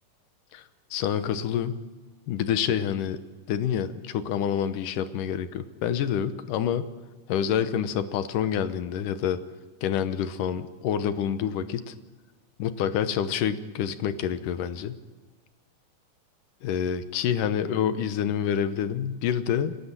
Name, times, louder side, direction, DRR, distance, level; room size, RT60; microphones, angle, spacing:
voice 1, 0.9-1.8 2.3-3.2 3.5-6.9 7.3-9.4 9.8-11.9 12.6-15.0 16.6-19.8, left 9 dB, 85° left, 11 dB, 2.6 m, -27 dB
28.5 x 12.5 x 7.5 m, 1.3 s
omnidirectional pair, 3.7 m